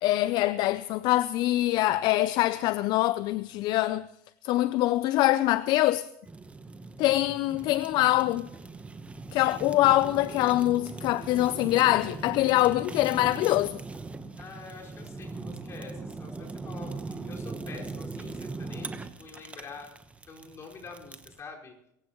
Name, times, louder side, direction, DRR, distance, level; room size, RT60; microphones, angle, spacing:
voice 1, 0.0-4.1 4.4-6.1 7.0-8.5 9.3-13.8, left 16 dB, 60° left, 0.5 m, -24 dB
Fire, 6.3-21.4, right 3 dB, 15° right, 1.1 m, -40 dB
voice 2, 14.4-19.9 20.2-21.8, left 4 dB, 35° left, 5.0 m, -46 dB
25.0 x 15.5 x 3.1 m
supercardioid pair, 105°, 8 cm